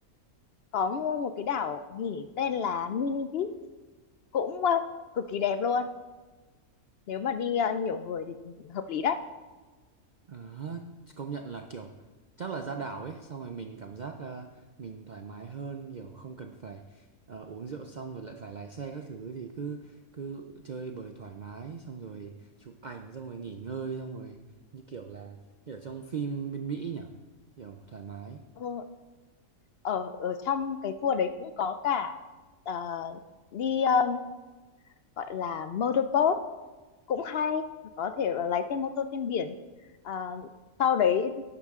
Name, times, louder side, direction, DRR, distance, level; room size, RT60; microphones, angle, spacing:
voice 1, 0.7-3.5 4.3-4.8 5.2-5.9 7.1-8.3 8.6-9.2 28.6-28.8 29.8-32.2 32.7-33.2 33.5-34.2 35.2-36.4 37.1-37.6 38.0-39.6 40.0-40.5 40.8-41.4, left 7 dB, 65° left, 10 dB, 0.6 m, -28 dB
voice 2, 10.3-10.9 11.2-11.9 12.4-24.4 24.7-25.4 25.7-27.1 27.6-28.4, right 5 dB, 65° right, 5 dB, 0.4 m, -39 dB
12.0 x 10.0 x 3.6 m, 1.3 s
omnidirectional pair, 1.5 m